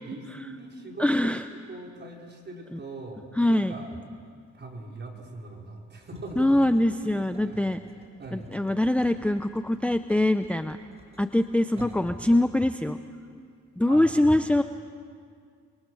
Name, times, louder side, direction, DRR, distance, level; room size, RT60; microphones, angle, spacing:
voice 1, 0.0-3.9 4.5-7.6 8.2-8.5 11.7-12.0 13.8-14.5, right 2 dB, 35° right, 0 dB, 5.0 m, -41 dB
voice 2, 1.0-1.4 3.4-3.7 6.4-7.8 8.5-10.8 11.2-13.0 13.8-14.6, left 1 dB, 5° left, 9 dB, 0.7 m, -23 dB
sound 1, 6.0-13.9, right 2 dB, 20° right, 4.4 m, -52 dB
30.0 x 23.0 x 6.4 m, 2.1 s
cardioid pair, 90°, 30 cm